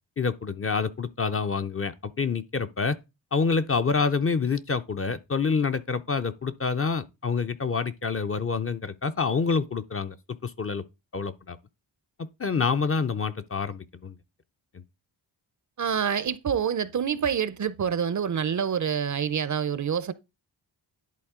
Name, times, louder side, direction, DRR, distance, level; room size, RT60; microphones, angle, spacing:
voice 1, 0.2-3.0 3.3-10.8 11.1-11.6 12.2-14.2 14.7-14.8, left 5 dB, 30° left, 0.5 m, -27 dB
voice 2, 15.8-20.1, right 7 dB, 40° right, 0.5 m, -27 dB
10.5 x 4.0 x 3.6 m
wide cardioid pair, 95°, 45 cm